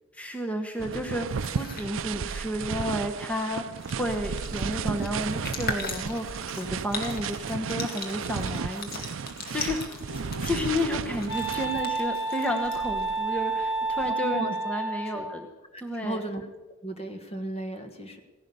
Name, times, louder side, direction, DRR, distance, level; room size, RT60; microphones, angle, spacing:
voice 1, 0.1-9.0 9.5-10.1 10.4-15.5 15.8-16.2, left 1 dB, 5° left, 3 dB, 1.0 m, -32 dB
sound 1, 0.8-12.1 12.6-14.1, right 6 dB, 65° right, 0.5 m, -34 dB
sound 2, 1.2-1.9 3.3-3.4 3.6-13.2, left 3 dB, 50° left, 2.1 m, -39 dB
Wind instrument woodwind instrument, 10.1-15.4, right 3 dB, 65° left, 1.7 m, -31 dB
voice 2, 14.1-14.6 15.0-15.2 15.7-16.5 16.8-18.2, right 1 dB, 30° left, 7 dB, 1.5 m, -35 dB
16.0 x 11.5 x 6.8 m, 1.2 s
head